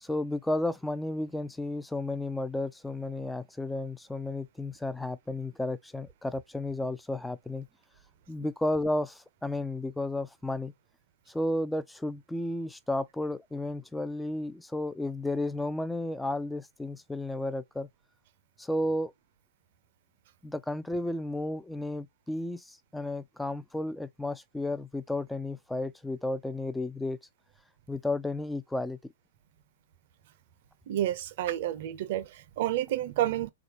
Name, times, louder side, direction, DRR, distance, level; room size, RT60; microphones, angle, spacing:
voice 1, 0.0-7.7 8.3-10.7 11.3-17.9 18.6-19.1 20.4-27.2 27.9-29.1, left 1 dB, 5° left, 0.4 m, -33 dB
voice 2, 30.9-33.5, right 13 dB, 55° right, 0.6 m, -30 dB
3.3 x 2.4 x 2.9 m
hypercardioid pair, 115°, 0 cm